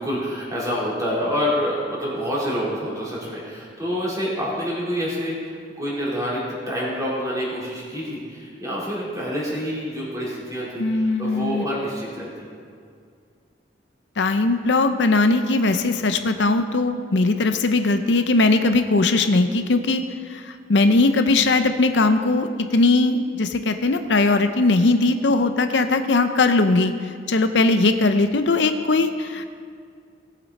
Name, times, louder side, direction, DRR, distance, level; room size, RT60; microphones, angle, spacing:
voice 1, 0.0-12.5, equal, 20° right, -7 dB, 3.7 m, -27 dB
voice 2, 10.8-11.6 14.2-20.0 20.3-26.9 27.3-29.4, left 3 dB, 70° left, 8 dB, 0.7 m, -19 dB
18.0 x 8.3 x 4.2 m, 2.2 s
head